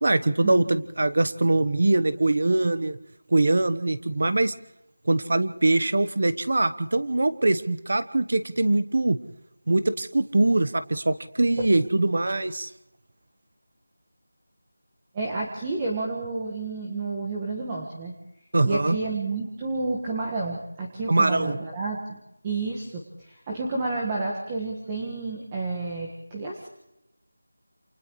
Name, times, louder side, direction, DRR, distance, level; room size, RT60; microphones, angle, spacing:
voice 1, 0.0-3.0 3.3-4.5 5.0-9.2 9.7-12.7 18.5-19.0 21.1-21.6, right 2 dB, 55° right, 13 dB, 1.2 m, -22 dB
voice 2, 15.1-18.1 18.6-22.2 22.4-26.7, right 3 dB, 15° right, -2 dB, 1.7 m, -30 dB
29.0 x 28.0 x 3.2 m, 0.83 s
figure-of-eight pair, 175°, 0 cm